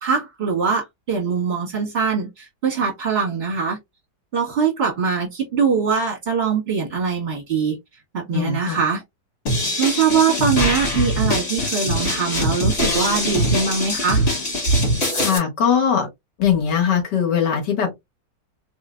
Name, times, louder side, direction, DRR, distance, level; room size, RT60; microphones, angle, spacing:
voice 1, 0.0-3.8 4.3-7.8 8.1-9.0 9.8-14.3, right 6 dB, 35° right, 2.1 m, -22 dB
voice 2, 8.3-8.8 15.1-16.1 16.4-17.9, left 7 dB, 80° left, 1.9 m, -20 dB
sound 1, 9.5-15.4, equal, 45° left, 2.4 m, -22 dB
3.8 x 3.1 x 2.4 m
omnidirectional pair, 1.8 m